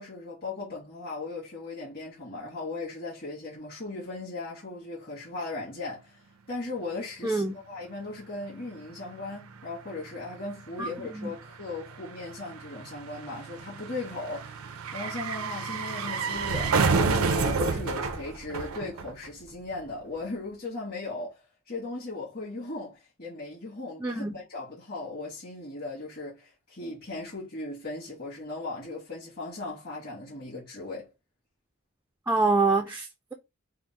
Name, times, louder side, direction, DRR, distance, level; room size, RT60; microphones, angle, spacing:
voice 1, 0.0-6.2 6.5-31.1, left 3 dB, 45° left, 1.5 m, -38 dB
voice 2, 7.2-7.5 10.8-11.3 24.0-24.4 32.3-33.3, right 3 dB, 10° right, 0.3 m, -26 dB
sound 1, 8.8-8.9 9.1-19.5 19.7-19.8, right 4 dB, 70° right, 0.5 m, -30 dB
3.6 x 2.0 x 4.0 m
head